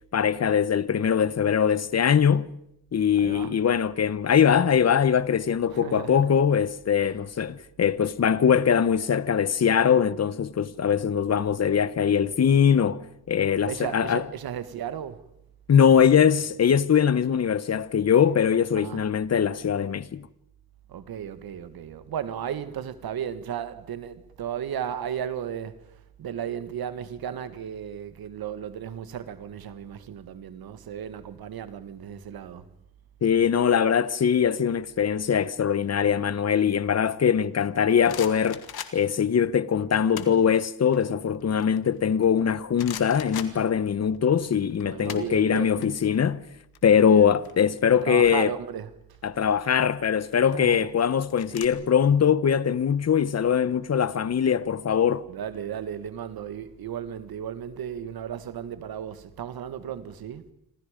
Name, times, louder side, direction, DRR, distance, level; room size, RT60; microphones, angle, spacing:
voice 1, 0.1-2.5 2.9-14.2 15.7-20.3 33.2-38.6 38.9-46.5 46.8-48.5 49.2-55.3, left 7 dB, 45° left, 1.0 m, -22 dB
voice 2, 3.2-3.5 5.7-6.3 7.0-7.2 13.6-15.2 18.8-19.0 20.9-32.7 44.8-46.0 46.9-47.4 47.9-48.9 50.5-50.9 55.3-60.4, right 9 dB, 80° right, 1.8 m, -35 dB
sound 1, 37.6-39.3 39.9-40.5 40.9-42.4 42.8-44.2 44.4-45.9 46.1-46.3 46.6-48.2 49.1-49.5 50.2-51.7, left 9 dB, 85° left, 2.1 m, -40 dB
27.5 x 25.5 x 5.2 m
cardioid pair, 95°, 36 cm